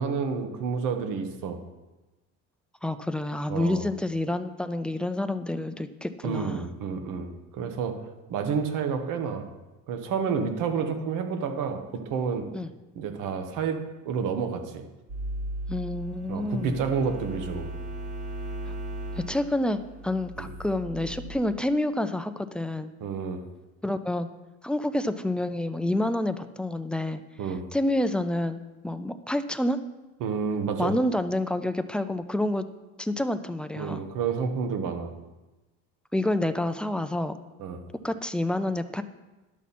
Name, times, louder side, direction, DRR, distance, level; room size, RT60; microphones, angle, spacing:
voice 1, 0.0-1.6 3.5-3.8 6.2-8.0 8.3-9.5 9.9-12.4 12.9-13.8 14.0-14.8 16.3-17.7 20.4-20.5 23.0-23.4 27.4-27.6 30.2-31.0 33.8-35.1 37.6-37.8, right 6 dB, 70° right, 7 dB, 1.3 m, -29 dB
voice 2, 2.8-6.7 10.8-11.0 11.3-11.4 12.5-12.7 15.7-16.7 18.7-18.8 19.2-22.9 23.8-24.3 24.6-27.2 27.7-28.6 28.8-29.8 30.8-32.7 33.0-34.0 36.1-37.4 38.0-39.0, left 1 dB, 5° left, 9 dB, 0.3 m, -28 dB
sound 1, 15.1-21.4, right 1 dB, 50° right, 2.2 m, -37 dB
11.5 x 7.1 x 4.2 m, 1.1 s
cardioid pair, 135°, 32 cm